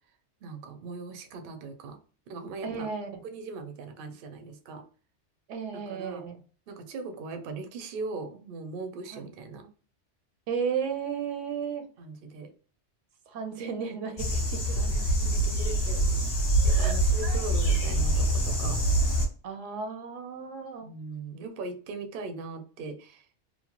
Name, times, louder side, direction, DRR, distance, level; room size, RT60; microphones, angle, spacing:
voice 1, 0.4-2.0 2.3-2.9 3.2-4.8 5.9-6.2 6.7-9.7 12.0-12.5 14.7-16.4 16.6-19.2 20.8-23.3, right 3 dB, 60° right, 7 dB, 0.6 m, -40 dB
voice 2, 2.6-3.2 5.5-6.4 9.1-9.3 10.5-11.9 13.3-14.8 16.7-16.9 17.2-17.4 19.4-20.9, right 6 dB, 80° right, 6 dB, 0.9 m, -34 dB
sound 1, 14.2-19.3, right 1 dB, 40° left, 0.8 m, -25 dB
2.9 x 2.1 x 2.8 m, 0.39 s
omnidirectional pair, 1.3 m